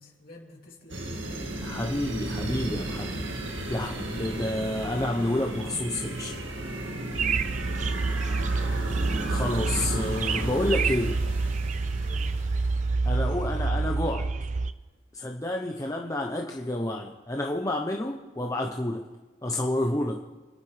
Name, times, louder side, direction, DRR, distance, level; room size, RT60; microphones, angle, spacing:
voice 1, 0.0-1.4 7.4-8.4 12.0-12.4, left 1 dB, 50° left, -1 dB, 2.9 m, -49 dB
sound 1, 0.9-13.2, right 1 dB, 75° right, 1.9 m, -34 dB
voice 2, 1.6-3.1 3.7-6.4 9.3-11.2 13.0-14.3 15.1-19.0 19.4-20.2, left 1 dB, 15° left, 1 dB, 0.8 m, -29 dB
sound 2, 7.1-14.7, right 3 dB, 40° right, 0.5 m, -28 dB
27.5 x 11.0 x 3.3 m, 1.3 s
head